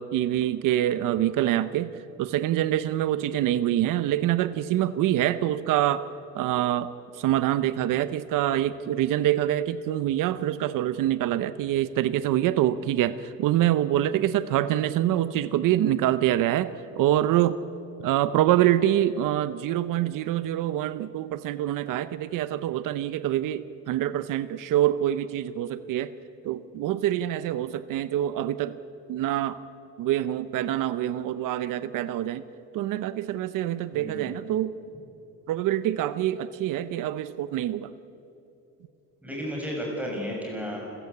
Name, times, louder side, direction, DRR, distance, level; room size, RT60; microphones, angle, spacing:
voice 1, 0.0-1.9 2.2-6.0 6.3-6.9 7.2-17.6 18.0-26.1 26.4-28.8 29.1-29.6 30.0-32.4 32.7-34.7 35.5-37.9, right 12 dB, 80° right, 14 dB, 0.8 m, -25 dB
voice 2, 33.9-34.3 39.2-40.8, equal, 5° right, -2 dB, 6.7 m, -33 dB
28.5 x 15.5 x 8.4 m, 2.8 s
cardioid pair, 160°, 32 cm